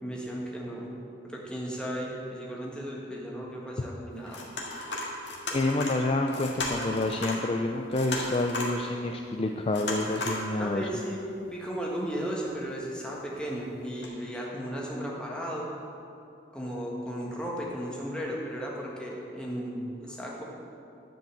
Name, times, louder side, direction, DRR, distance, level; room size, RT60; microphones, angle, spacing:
voice 1, 0.0-1.0 1.2-4.4 10.6-15.8 16.5-20.4, equal, 5° left, -4 dB, 1.4 m, -35 dB
sound 1, 4.2-7.4 7.7-8.9 9.7-10.5 10.9-11.0 12.1-12.4 13.5-13.6 14.0-14.1, left 2 dB, 70° left, 1.7 m, -35 dB
voice 2, 5.5-10.9, left 2 dB, 30° left, 3 dB, 0.4 m, -28 dB
10.5 x 5.3 x 7.6 m, 2.7 s
head